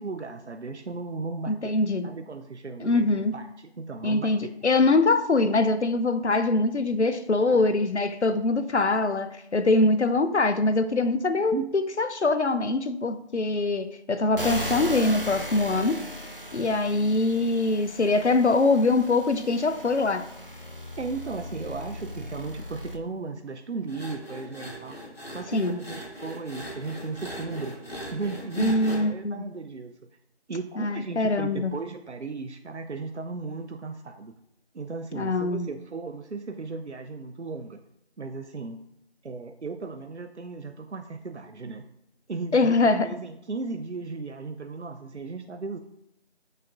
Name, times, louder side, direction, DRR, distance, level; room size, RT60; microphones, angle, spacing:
voice 1, 0.0-1.7 2.0-4.3 7.4-7.6 11.5-11.7 21.0-27.8 28.1-30.1 30.5-34.3 34.7-37.8 38.2-38.8 39.2-41.8 42.3-45.8, right 4 dB, 85° right, 0.7 m, -36 dB
voice 2, 1.5-2.1 2.8-3.3 4.0-16.0 16.5-20.3 25.5-25.8 28.6-29.4 30.8-31.7 35.1-35.7 42.5-43.1, left 3 dB, 85° left, 0.7 m, -23 dB
sound 1, 14.4-23.0, equal, 55° right, 1.1 m, -37 dB
sound 2, 23.9-29.0, equal, 60° left, 3.2 m, -40 dB
13.0 x 6.5 x 2.5 m
figure-of-eight pair, 180°, 33 cm